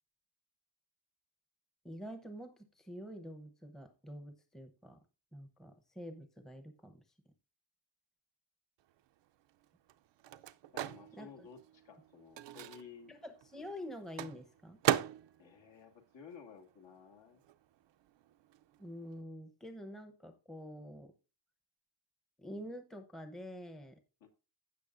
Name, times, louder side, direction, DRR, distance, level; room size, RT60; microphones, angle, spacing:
voice 1, 1.8-5.0 5.3-7.0 11.2-11.5 13.1-14.8 18.8-21.1 22.4-24.0, equal, ahead, 0.8 m, -47 dB
Microwave oven, 8.9-17.0 17.3-19.2, right 12 dB, 65° right, 0.6 m, -40 dB
voice 2, 10.7-13.1 15.4-17.4 24.2-24.3, left 6 dB, 65° left, 2.2 m, -54 dB
16.0 x 6.3 x 2.5 m
wide cardioid pair, 175°, 48 cm